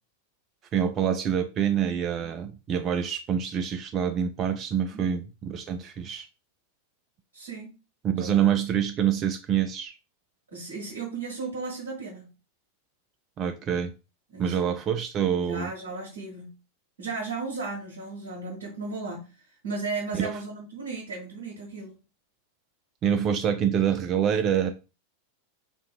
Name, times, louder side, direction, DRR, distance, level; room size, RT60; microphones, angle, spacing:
voice 1, 0.7-6.3 8.0-9.9 13.4-13.9 14.4-15.7 20.1-20.3 23.0-24.7, right 8 dB, 30° right, 0.3 m, -26 dB
voice 2, 7.3-7.7 8.2-8.5 10.5-12.3 14.3-14.7 15.4-16.5 17.0-22.0, right 3 dB, 65° right, 0.9 m, -35 dB
2.7 x 2.6 x 2.3 m
figure-of-eight pair, 90°, 0 cm